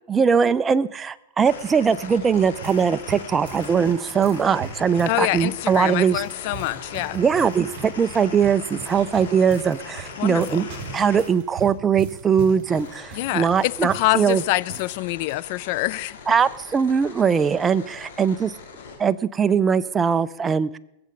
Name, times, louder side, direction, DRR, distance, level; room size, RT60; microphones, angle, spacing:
voice 1, 0.1-6.2 7.1-10.7 10.9-14.4 16.3-18.5 19.0-20.8, right 6 dB, 15° right, 0.4 m, -21 dB
sound 1, 1.4-11.3 12.7-19.0, left 5 dB, 85° left, 2.8 m, -40 dB
sound 2, 2.1-15.0 15.2-15.4 16.1-16.4, right 4 dB, 40° right, 3.0 m, -40 dB
voice 2, 5.1-7.2 10.2-10.6 13.1-16.2, left 18 dB, 50° left, 0.3 m, -25 dB
20.0 x 7.7 x 5.1 m
supercardioid pair, 150°, 0 cm